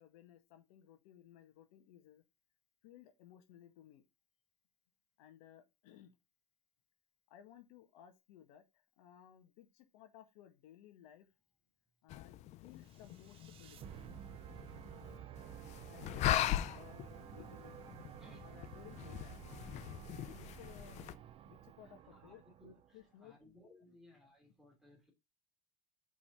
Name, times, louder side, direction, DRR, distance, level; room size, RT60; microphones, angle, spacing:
voice 1, 0.0-2.2 2.8-4.0 5.2-6.1 7.3-11.3 12.0-14.0 15.0-15.4 15.9-17.8 18.4-19.4 20.3-21.0 21.4-22.4 22.9-23.4 23.9-24.0, left 11 dB, 85° left, 1.7 m, -59 dB
sound 1, 12.1-21.2, left 12 dB, 40° left, 0.5 m, -41 dB
sound 2, 12.9-23.1, right 10 dB, 30° right, 0.5 m, -52 dB
voice 2, 22.6-25.1, left 1 dB, ahead, 2.9 m, -61 dB
5.5 x 5.1 x 5.6 m
cardioid pair, 160°, 18 cm